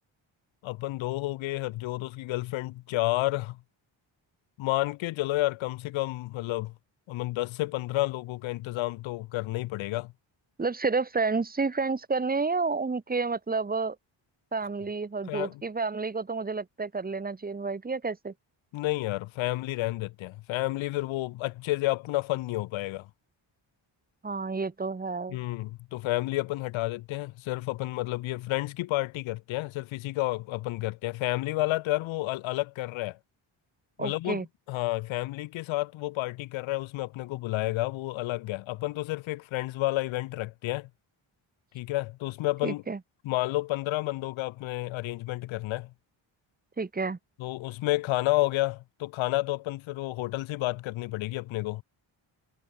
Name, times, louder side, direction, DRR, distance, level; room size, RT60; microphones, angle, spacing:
voice 1, 0.6-3.6 4.6-6.7 7.1-10.1 15.3-15.5 18.7-23.1 25.3-33.2 34.0-34.4 34.7-40.9 41.7-42.8 43.2-45.9 47.4-51.8, left 18 dB, 70° left, 0.5 m, -30 dB
voice 2, 10.6-14.0 14.5-18.3 24.2-25.4 34.0-34.5 42.6-43.0 46.8-47.2, right 4 dB, 20° right, 1.1 m, -30 dB
cardioid pair, 85°, 49 cm